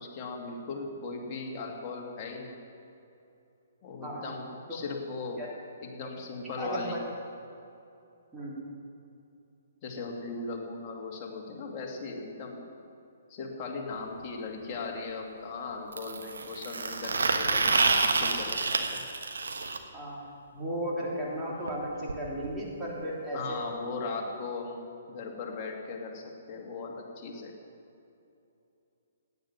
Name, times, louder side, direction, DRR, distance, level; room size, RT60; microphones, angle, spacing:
voice 1, 0.0-2.6 3.8-5.4 5.8-7.0 9.8-12.7 13.3-19.0 23.3-27.5, left 3 dB, 30° left, 0 dB, 2.3 m, -38 dB
voice 2, 4.0-4.3 4.7-4.8 5.4-5.5 6.4-6.9 8.3-8.6 19.9-20.2 20.5-23.6, equal, 15° right, -5 dB, 3.5 m, -35 dB
sound 1, 13.9-14.0 15.9-19.8 21.7-21.8 22.1-22.2 22.4-22.6 23.5-23.6, right 4 dB, 70° right, 1.2 m, -28 dB
16.5 x 9.7 x 6.1 m, 2.7 s
figure-of-eight pair, 125°, 0 cm